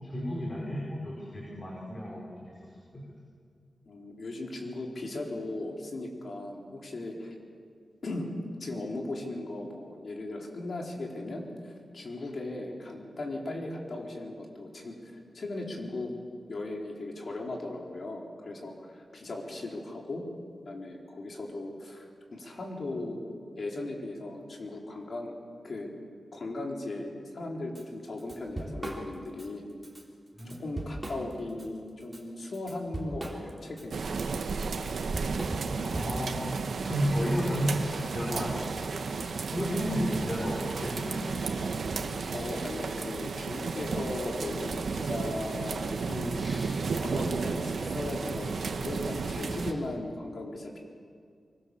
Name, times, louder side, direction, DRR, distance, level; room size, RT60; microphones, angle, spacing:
voice 1, 0.0-2.2 2.9-3.0 30.4-30.5 35.8-36.6 36.8-38.6 38.9-39.0 39.5-41.3, equal, 30° left, -4 dB, 5.4 m, -32 dB
voice 2, 3.8-7.3 8.0-14.9 15.3-16.1 16.5-20.2 20.7-22.1 22.3-25.3 25.6-25.9 26.3-29.6 30.4-34.0 42.3-46.4 47.0-50.8, left 2 dB, 55° left, 0 dB, 4.3 m, -37 dB
Drum kit / Drum, 27.8-27.9 28.2-29.5 29.8-30.0 30.4-31.7 32.0-36.4, right 1 dB, 15° right, 3.7 m, -38 dB
sound 1, 33.9-49.7, right 4 dB, 85° right, 1.5 m, -33 dB
sound 2, 36.8-49.8, equal, 5° left, 5.6 m, -47 dB
24.0 x 24.0 x 7.1 m, 2.2 s
wide cardioid pair, 110°, 0 cm